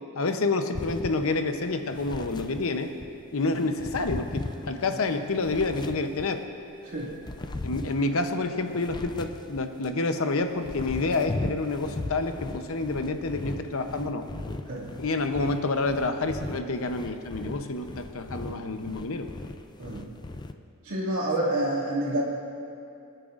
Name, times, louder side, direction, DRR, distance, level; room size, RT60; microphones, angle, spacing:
voice 1, 0.1-2.9 3.3-6.4 7.6-14.3 15.0-19.3, left 3 dB, 70° left, 7 dB, 0.7 m, -28 dB
sound 1, 0.7-3.1 3.5-6.5 6.9-10.0 10.4-20.5, left 2 dB, 20° left, 0.3 m, -38 dB
voice 2, 20.8-22.2, right 1 dB, 75° right, -6 dB, 2.3 m, -28 dB
26.5 x 9.1 x 2.5 m, 2.6 s
head